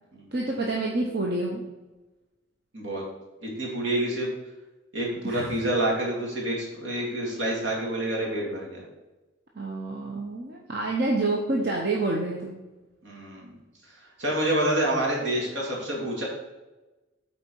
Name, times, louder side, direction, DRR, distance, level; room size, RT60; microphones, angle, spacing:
voice 1, 0.3-1.6 5.2-5.6 9.5-12.5, right 2 dB, 55° right, -2 dB, 0.9 m, -28 dB
voice 2, 2.7-3.0 3.4-4.3 4.9-8.8 13.0-13.5 14.2-16.2, right 1 dB, 80° right, -3 dB, 2.3 m, -28 dB
8.4 x 4.4 x 4.6 m, 1.1 s
head